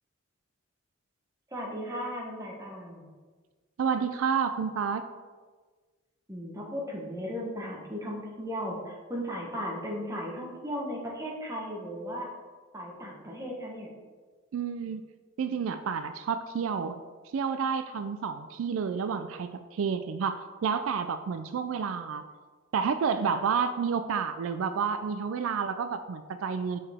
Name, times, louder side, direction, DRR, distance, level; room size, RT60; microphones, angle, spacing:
voice 1, 1.5-3.1 6.3-12.3 12.7-13.9, equal, 15° right, -2 dB, 1.1 m, -36 dB
voice 2, 3.8-5.0 14.5-15.0 15.4-17.0 17.3-22.2 22.7-26.8, right 6 dB, 75° right, 10 dB, 0.3 m, -30 dB
6.6 x 5.4 x 3.5 m, 1.4 s
head